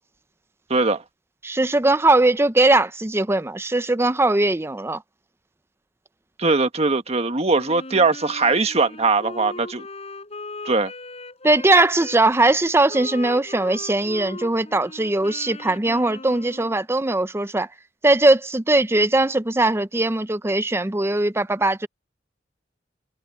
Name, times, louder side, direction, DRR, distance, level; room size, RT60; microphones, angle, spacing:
voice 1, 0.7-1.0 6.4-9.8 10.6-10.9, right 3 dB, 35° right, 1.5 m, -20 dB
voice 2, 1.4-5.0 11.4-17.7 18.0-21.9, right 2 dB, 15° right, 0.6 m, -20 dB
Wind instrument woodwind instrument, 7.5-12.2 12.9-16.8, left 2 dB, 35° left, 6.7 m, -39 dB
head